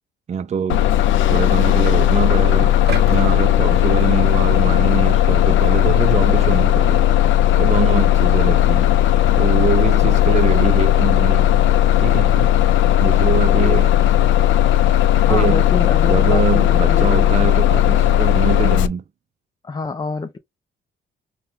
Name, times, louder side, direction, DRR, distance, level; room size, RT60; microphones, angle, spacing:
voice 1, 0.3-0.9 1.2-7.1 7.6-8.9 9.4-11.5 12.0-12.6 13.0-13.9 15.3-15.7 16.0-19.0, right 7 dB, 35° right, 0.4 m, -24 dB
Bus, 0.7-18.9, left 12 dB, 75° left, 0.5 m, -15 dB
sound 1, 2.9-5.0 5.5-5.7, right 5 dB, 55° right, 1.0 m, -33 dB
voice 2, 15.2-17.4 19.6-20.4, left 4 dB, 20° left, 0.5 m, -27 dB
4.2 x 2.2 x 3.7 m
cardioid pair, 90°, 20 cm